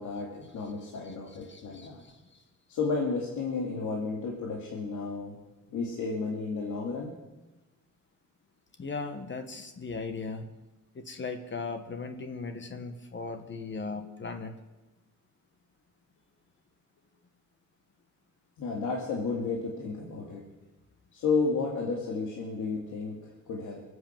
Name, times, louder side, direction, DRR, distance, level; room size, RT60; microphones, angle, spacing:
voice 1, 0.0-2.0 2.7-5.4 5.7-7.1 18.6-20.4 21.1-23.8, left 4 dB, 75° left, -1 dB, 2.5 m, -32 dB
voice 2, 1.5-2.4 8.8-10.5 10.9-14.5, left 4 dB, 40° left, 7 dB, 1.5 m, -38 dB
23.0 x 8.0 x 7.6 m, 1.1 s
cardioid pair, 90°, 30 cm